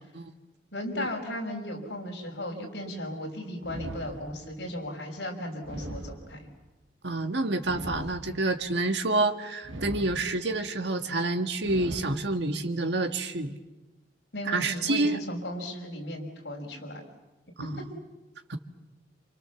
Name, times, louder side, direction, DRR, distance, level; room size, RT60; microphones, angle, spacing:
voice 1, 0.7-6.5 14.3-17.1 17.6-17.7, left 1 dB, 60° left, 1 dB, 5.9 m, -36 dB
sound 1, 3.6-4.7 5.6-6.7 7.6-8.7 9.6-10.7 11.6-12.7, right 1 dB, 85° right, 1.7 m, -41 dB
voice 2, 7.0-13.5 14.5-15.2 17.6-17.8 18.5-18.6, right 2 dB, 65° right, 7 dB, 1.8 m, -28 dB
28.5 x 27.5 x 7.1 m, 1.1 s
head